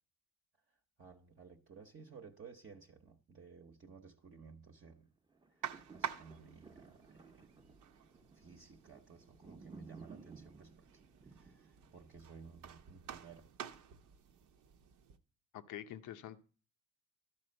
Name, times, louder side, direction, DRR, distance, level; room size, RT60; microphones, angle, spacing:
voice 1, 1.0-5.1 5.6-5.7 5.9-7.5 8.3-10.9 11.3-13.5, right 5 dB, 40° right, 0.9 m, -56 dB
sound 1, 5.3-13.6 14.1-14.2, right 4 dB, 15° right, 0.7 m, -59 dB
sound 2, 5.6-15.2, right 9 dB, 80° right, 0.8 m, -49 dB
voice 2, 15.5-16.4, left 11 dB, 85° left, 0.7 m, -46 dB
12.5 x 4.3 x 7.7 m
cardioid pair, 90°, 30 cm